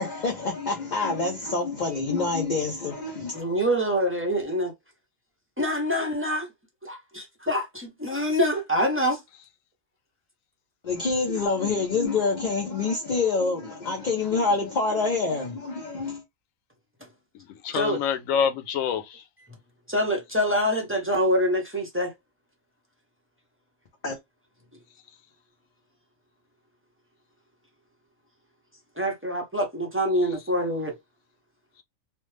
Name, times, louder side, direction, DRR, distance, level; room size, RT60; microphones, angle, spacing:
voice 1, 0.0-3.4 10.8-16.2 24.0-24.2, left 4 dB, 45° left, 0.6 m, -26 dB
voice 2, 3.3-4.7 5.6-6.5 6.8-9.2 17.7-18.0 19.9-22.1 29.0-31.0, equal, 15° right, 0.6 m, -25 dB
voice 3, 17.3-19.2, left 7 dB, 90° left, 1.0 m, -27 dB
3.1 x 2.0 x 3.1 m
omnidirectional pair, 1.3 m